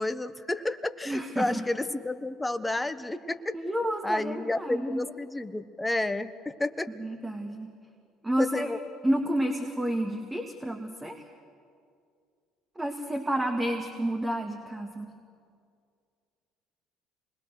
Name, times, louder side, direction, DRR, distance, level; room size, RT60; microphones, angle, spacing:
voice 1, 0.0-3.5 4.0-6.9 8.4-8.8, left 2 dB, 15° left, 12 dB, 1.2 m, -30 dB
voice 2, 1.1-1.6 3.5-5.0 7.0-7.7 8.2-8.7 9.0-11.2 12.8-15.1, right 1 dB, 15° right, 3 dB, 2.2 m, -30 dB
27.0 x 21.0 x 6.6 m, 2.3 s
hypercardioid pair, 65°, 0 cm